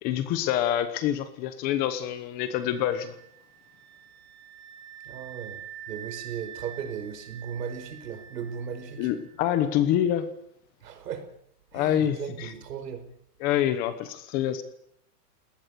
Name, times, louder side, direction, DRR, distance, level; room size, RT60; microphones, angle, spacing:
voice 1, 0.0-3.1 9.0-10.3 11.7-12.5 13.4-14.6, left 11 dB, 20° left, 12 dB, 1.0 m, -26 dB
sound 1, 2.6-9.4, right 10 dB, 45° right, 5.1 m, -46 dB
voice 2, 5.0-5.6 5.9-9.1 10.8-11.2 11.7-13.0, right 7 dB, 80° right, 10 dB, 5.2 m, -36 dB
22.0 x 19.0 x 8.2 m, 0.70 s
supercardioid pair, 175°, 47 cm